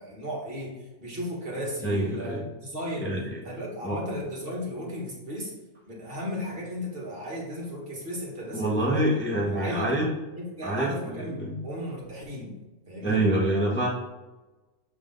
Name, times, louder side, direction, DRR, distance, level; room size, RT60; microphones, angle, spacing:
voice 1, 0.0-3.1 3.4-5.5 5.9-9.0 9.5-9.9 10.4-12.5 12.9-13.3, equal, 45° right, -4 dB, 1.8 m, -35 dB
voice 2, 1.8-2.4 3.0-3.4 3.8-4.0 8.5-10.1 10.6-11.6 13.0-13.9, right 1 dB, 10° left, -4 dB, 0.9 m, -26 dB
7.2 x 3.6 x 3.9 m, 1.1 s
omnidirectional pair, 1.3 m